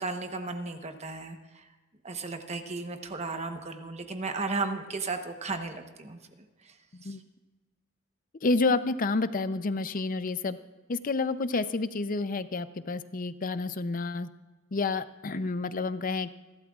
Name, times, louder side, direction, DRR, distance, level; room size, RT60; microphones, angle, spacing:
voice 1, 0.0-1.7 2.0-6.2 6.6-6.7 7.0-7.2, right 3 dB, 35° right, 6 dB, 1.1 m, -35 dB
voice 2, 8.4-10.6 10.9-14.3 14.7-16.3, left 3 dB, 40° left, 13 dB, 0.6 m, -29 dB
27.5 x 12.5 x 2.4 m, 1.2 s
head